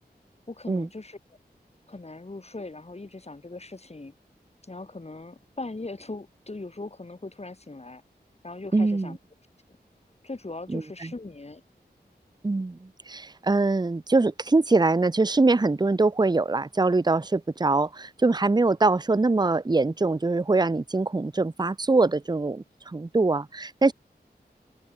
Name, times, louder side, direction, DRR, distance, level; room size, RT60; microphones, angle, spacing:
voice 1, 0.5-1.2 1.9-4.1 4.7-8.0 8.4-9.2 10.2-11.6, left 2 dB, 40° left, 3.2 m, -39 dB
voice 2, 8.7-9.1 10.7-11.1 12.4-23.9, right 3 dB, 25° right, 0.7 m, -23 dB
open air
wide cardioid pair, 85°, 17 cm